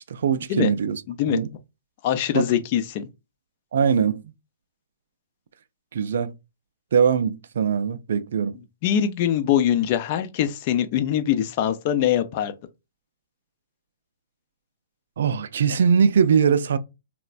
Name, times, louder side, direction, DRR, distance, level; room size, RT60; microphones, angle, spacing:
voice 1, 0.1-1.0 1.3-1.5 2.3-2.5 3.7-4.2 5.9-6.3 6.9-8.5 15.2-16.8, right 7 dB, 70° right, 0.4 m, -21 dB
voice 2, 1.1-1.4 2.0-3.1 8.8-12.5, left 10 dB, 45° left, 0.5 m, -23 dB
3.1 x 2.1 x 2.4 m
hypercardioid pair, 125°, 0 cm